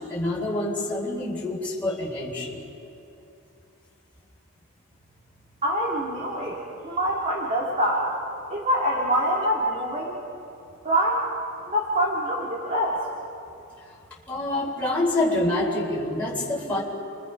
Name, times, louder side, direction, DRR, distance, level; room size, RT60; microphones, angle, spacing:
voice 1, 0.0-2.6 14.3-16.8, left 2 dB, 5° left, -6 dB, 3.5 m, -26 dB
voice 2, 5.6-8.1 8.5-10.2 10.8-11.2 11.7-13.1, equal, 30° right, -4 dB, 2.8 m, -25 dB
29.0 x 23.5 x 5.5 m, 2.8 s
head